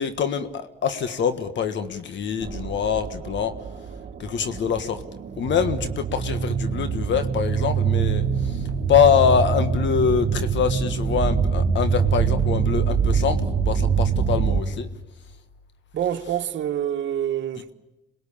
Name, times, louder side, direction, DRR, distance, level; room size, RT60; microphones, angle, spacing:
voice 1, 0.0-3.5 4.2-5.0 5.4-14.9, left 7 dB, 65° left, 1.6 m, -24 dB
sound 1, 2.4-14.6, right 6 dB, 50° right, 1.9 m, -24 dB
voice 2, 15.9-17.7, right 10 dB, 70° right, 1.4 m, -26 dB
27.0 x 21.0 x 8.7 m
cardioid pair, 90°, 20 cm